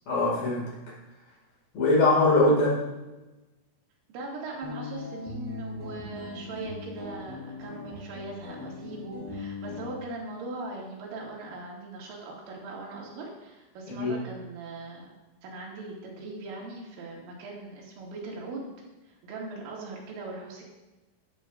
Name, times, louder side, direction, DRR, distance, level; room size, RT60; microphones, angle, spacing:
voice 1, 0.1-0.9 1.7-2.8 13.9-14.1, left 2 dB, 55° left, -4 dB, 3.4 m, -22 dB
voice 2, 4.1-15.1 15.4-18.7 19.1-20.6, right 2 dB, 90° right, -3 dB, 4.5 m, -40 dB
sound 1, 4.6-9.9, left 3 dB, 5° left, 3.0 m, -40 dB
15.5 x 8.4 x 2.5 m, 1.1 s
omnidirectional pair, 5.6 m